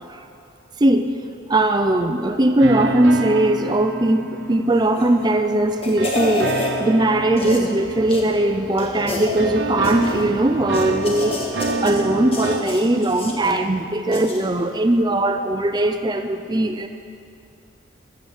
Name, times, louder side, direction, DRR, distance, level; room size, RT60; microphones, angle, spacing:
voice 1, 0.8-1.1 1.5-16.9, right 1 dB, 20° right, 6 dB, 0.5 m, -19 dB
sound 1, 2.6-5.3 6.0-9.0 9.4-12.6, right 2 dB, 60° right, 0.7 m, -28 dB
sound 2, 4.9-5.2 5.6-6.8 7.4-7.7 8.1-8.2 8.8-9.4 9.8-10.3 10.7-12.0 12.3-13.4 14.1-14.5 14.8-14.9, left 2 dB, 30° left, 1.3 m, -29 dB
14.0 x 8.0 x 7.1 m, 2.6 s
head